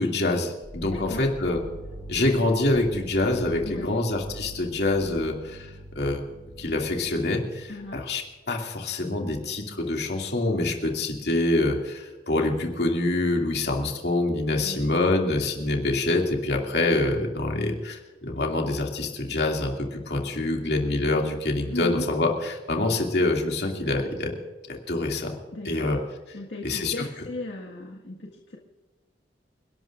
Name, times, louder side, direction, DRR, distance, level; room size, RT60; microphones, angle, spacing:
voice 1, 0.0-1.6 2.1-6.2 6.6-24.4 24.7-25.3 25.6-26.0 26.6-27.0, left 2 dB, 70° left, 1 dB, 2.5 m, -26 dB
sound 1, 0.6-8.3, right 1 dB, 25° right, 4.7 m, -43 dB
voice 2, 0.9-1.2 3.6-4.0 7.7-8.0 14.5-14.9 21.7-22.1 25.5-25.9 26.3-28.6, left 2 dB, 90° left, -2 dB, 1.8 m, -36 dB
28.5 x 12.0 x 2.5 m, 1.2 s
head